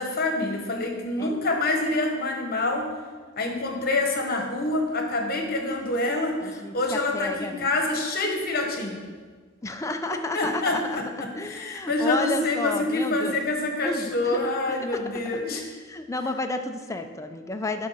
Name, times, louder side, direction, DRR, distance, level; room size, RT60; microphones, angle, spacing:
voice 1, 0.0-2.9 3.4-9.0 10.3-15.6, left 2 dB, 45° left, 2 dB, 1.1 m, -26 dB
voice 2, 6.4-7.7 9.6-13.4 13.8-14.4 14.7-15.1 15.5-17.9, left 2 dB, 15° left, 5 dB, 0.4 m, -32 dB
9.7 x 3.8 x 5.5 m, 1.5 s
head